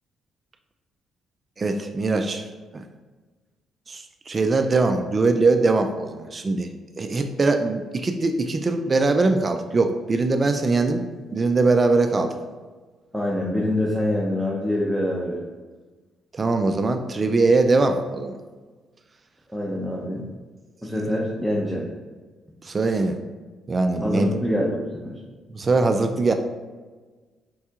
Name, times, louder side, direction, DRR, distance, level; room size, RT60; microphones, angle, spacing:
voice 1, 1.6-2.9 3.9-6.7 7.0-11.0 11.3-12.4 16.3-18.3 22.6-23.2 23.7-24.4 25.5-26.3, right 3 dB, 35° right, 6 dB, 0.3 m, -22 dB
voice 2, 13.1-15.4 19.5-20.2 20.8-21.9 24.0-25.2, left 1 dB, 5° left, -4 dB, 0.6 m, -25 dB
4.5 x 4.2 x 2.4 m, 1.3 s
cardioid pair, 90°, 0 cm